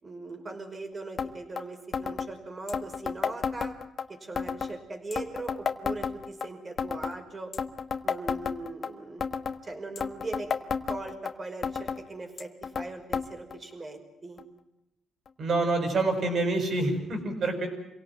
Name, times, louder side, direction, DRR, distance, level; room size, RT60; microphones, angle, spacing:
voice 1, 0.0-3.8 4.1-7.5 8.0-9.2 9.6-10.5 10.9-14.4, right 2 dB, 30° right, 4 dB, 5.5 m, -40 dB
sound 1, 1.2-1.3 1.6-1.7 1.9-2.3 2.7-4.0 4.4-4.7 5.1-6.5 6.8-7.2 7.5-8.9 9.2-9.6 10.0-11.3 11.6-12.0 12.4-12.9 13.1-13.3 13.5-13.6 14.4-14.5 15.3-15.4, left 6 dB, 50° left, 1.5 m, -31 dB
voice 2, 15.4-17.7, right 2 dB, 55° right, 6 dB, 7.1 m, -27 dB
26.5 x 17.5 x 9.3 m, 0.88 s
cardioid pair, 90°, 0 cm